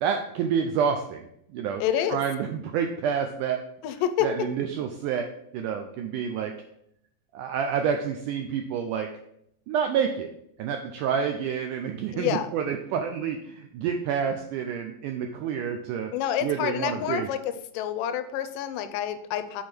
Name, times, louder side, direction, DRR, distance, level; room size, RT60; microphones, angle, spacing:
voice 1, 0.0-1.3 1.5-1.8 2.1-3.6 4.2-5.3 5.5-6.5 7.3-9.1 9.7-10.3 10.6-16.1 16.4-17.3, right 7 dB, 85° right, 5 dB, 1.8 m, -28 dB
voice 2, 1.8-2.2 3.8-4.3 12.1-12.5 16.1-17.4 17.7-19.6, left 10 dB, 80° left, 10 dB, 2.0 m, -28 dB
7.2 x 4.6 x 4.5 m, 0.74 s
omnidirectional pair, 4.2 m